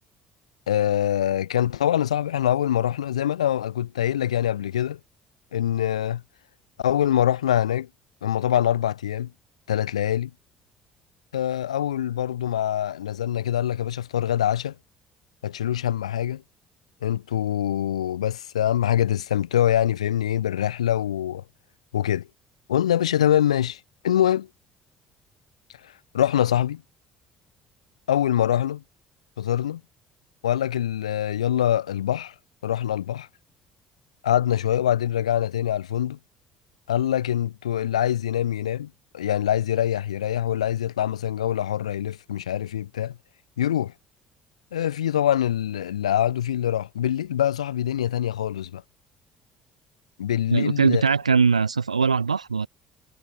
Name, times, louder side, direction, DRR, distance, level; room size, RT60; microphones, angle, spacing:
voice 1, 0.7-5.0 5.5-6.2 6.8-7.9 8.2-9.3 9.7-10.3 11.3-14.7 15.4-16.4 17.0-21.4 21.9-22.3 22.7-24.5 25.8-26.8 28.1-28.8 29.4-29.8 30.4-32.3 32.6-33.3 34.2-36.2 36.9-43.2 43.6-43.9 44.7-48.8 50.2-51.0, left 10 dB, 80° left, 6.6 m, -24 dB
voice 2, 50.5-52.7, right 5 dB, 85° right, 1.6 m, -21 dB
figure-of-eight pair, 55°, 3 cm